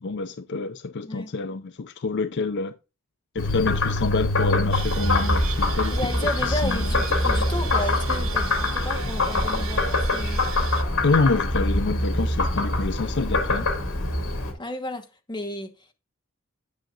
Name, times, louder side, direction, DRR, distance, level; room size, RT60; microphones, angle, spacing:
voice 1, 0.0-2.7 3.3-6.9 11.0-13.7, left 3 dB, 55° left, 0.5 m, -27 dB
Frog, 3.4-14.5, left 2 dB, 75° left, 2.3 m, -24 dB
sound 1, 4.7-10.8, right 8 dB, 70° right, 1.0 m, -37 dB
voice 2, 5.9-10.5 14.6-15.7, left 1 dB, 20° left, 1.2 m, -33 dB
10.5 x 6.5 x 2.5 m
head